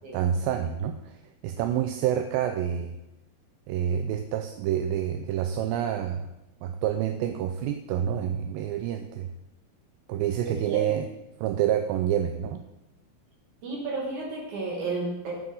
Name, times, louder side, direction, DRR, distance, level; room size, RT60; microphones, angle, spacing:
voice 1, 0.1-1.2 1.4-3.0 3.7-6.3 6.6-9.3 10.1-11.1 11.4-12.6, right 10 dB, 80° right, 6 dB, 2.2 m, -28 dB
voice 2, 10.5-11.0 13.6-15.3, right 3 dB, 55° right, -3 dB, 3.4 m, -32 dB
9.3 x 8.1 x 3.9 m, 0.94 s
omnidirectional pair, 4.3 m